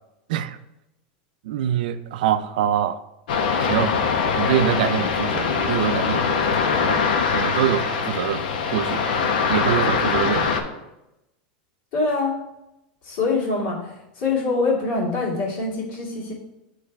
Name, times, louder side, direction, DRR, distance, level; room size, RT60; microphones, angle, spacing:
voice 1, 1.4-3.0 3.6-3.9 4.4-7.0 7.3-8.4 8.7-9.0 9.5-10.5, right 10 dB, 70° right, 12 dB, 0.4 m, -24 dB
sound 1, 3.3-10.6, left 5 dB, 85° left, 0.8 m, -22 dB
voice 2, 11.9-12.4 13.0-16.3, left 3 dB, 50° left, -4 dB, 2.1 m, -24 dB
8.5 x 3.3 x 3.4 m, 0.91 s
supercardioid pair, 170°, 5 cm